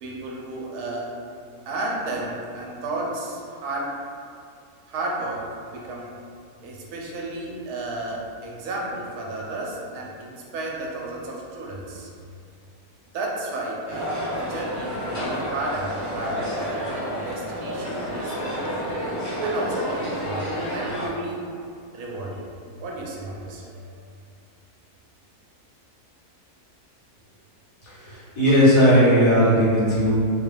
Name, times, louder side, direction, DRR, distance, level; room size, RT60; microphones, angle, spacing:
voice 1, 0.0-1.1 1.7-4.0 4.9-6.1 6.6-12.1 13.1-16.9 17.2-18.9 19.4-21.4 21.9-22.4 22.8-23.8, right 2 dB, 75° right, -2 dB, 1.1 m, -33 dB
sound 1, 13.9-21.1, equal, 20° left, 0.4 m, -29 dB
voice 2, 27.8-30.1, equal, 75° left, -10 dB, 1.7 m, -17 dB
3.5 x 2.2 x 3.2 m, 2.4 s
omnidirectional pair, 1.7 m